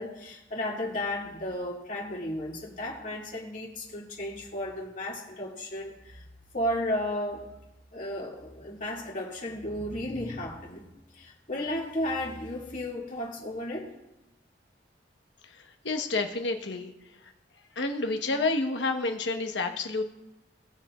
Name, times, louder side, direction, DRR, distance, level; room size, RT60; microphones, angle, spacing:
voice 1, 0.0-6.2 6.5-7.5 7.9-10.9 11.1-13.9, left 1 dB, 45° left, -4 dB, 2.3 m, -34 dB
voice 2, 15.4-16.9 17.8-20.0, left 3 dB, 80° left, 4 dB, 1.2 m, -29 dB
19.0 x 7.2 x 2.4 m, 0.95 s
head